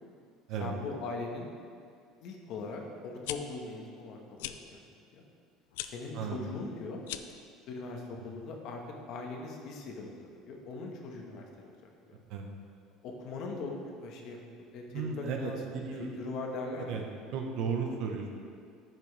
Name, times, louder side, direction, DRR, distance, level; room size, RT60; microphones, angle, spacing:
voice 1, 0.6-1.5 2.2-4.8 5.1-5.2 5.8-7.0 7.7-8.8 9.1-12.1 13.0-13.7 14.0-14.4 14.7-15.6 16.0-17.0, left 3 dB, 60° left, 1 dB, 1.3 m, -40 dB
sound 1, 3.1-3.4 4.4-4.6 5.7-5.9 7.0-7.4, left 14 dB, 90° left, 0.3 m, -38 dB
voice 2, 14.9-16.1 16.9-17.0 17.3-18.3, right 5 dB, 65° right, 2 dB, 1.0 m, -34 dB
10.5 x 6.0 x 3.4 m, 2.2 s
supercardioid pair, 120°, 0 cm